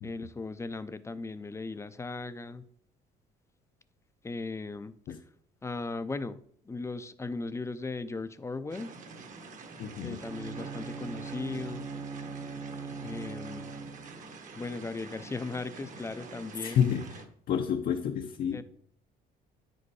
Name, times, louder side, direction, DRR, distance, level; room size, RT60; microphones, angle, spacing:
voice 1, 0.0-2.6 4.2-5.0 5.6-6.4 6.7-8.9 10.0-11.9 13.0-13.7 14.6-16.9 18.5-18.6, left 3 dB, 15° left, 13 dB, 0.5 m, -37 dB
sound 1, 8.7-17.3, right 3 dB, 50° right, 1.3 m, -47 dB
voice 2, 9.8-10.2 16.6-17.2 17.5-18.6, left 8 dB, 60° left, 4 dB, 0.7 m, -29 dB
Bowed string instrument, 10.2-14.4, right 5 dB, 30° right, 0.7 m, -40 dB
9.5 x 5.2 x 4.8 m, 0.63 s
cardioid pair, 110°, 17 cm